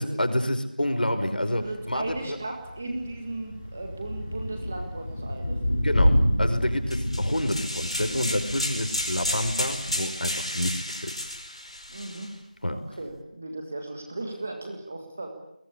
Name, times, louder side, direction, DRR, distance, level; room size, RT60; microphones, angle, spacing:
voice 1, 0.0-2.4 5.8-11.3 12.6-12.8, left 1 dB, 80° left, 8 dB, 5.6 m, -28 dB
voice 2, 1.2-5.6 11.9-12.3 12.7-15.3, right 2 dB, 10° right, 4 dB, 1.8 m, -36 dB
Thunder / Rain, 1.6-9.8, equal, 15° left, 2.6 m, -28 dB
sound 1, 6.9-12.3, left 1 dB, 40° left, 4.7 m, -32 dB
26.5 x 22.0 x 8.4 m, 0.79 s
figure-of-eight pair, 180°, 5 cm